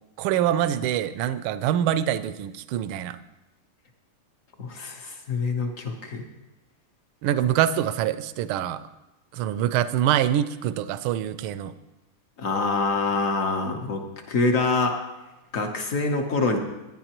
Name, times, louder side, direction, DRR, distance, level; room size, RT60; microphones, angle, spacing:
voice 1, 0.2-3.2 7.2-8.8 9.3-11.7, right 11 dB, 80° right, 13 dB, 1.4 m, -25 dB
voice 2, 4.6-6.2 12.4-14.0 14.3-15.0 15.5-16.6, left 3 dB, 50° left, 4 dB, 1.0 m, -25 dB
16.5 x 10.0 x 2.9 m, 1.0 s
omnidirectional pair, 2.4 m